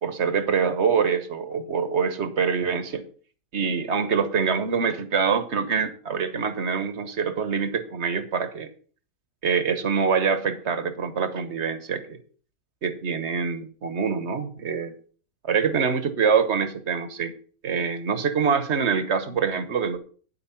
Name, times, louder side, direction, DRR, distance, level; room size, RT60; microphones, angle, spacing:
voice 1, 0.0-3.0 3.5-8.7 9.4-12.2 12.8-15.0 15.4-17.3 17.6-20.0, right 6 dB, 45° right, 11 dB, 1.3 m, -25 dB
9.7 x 8.4 x 5.8 m, 0.43 s
omnidirectional pair, 1.9 m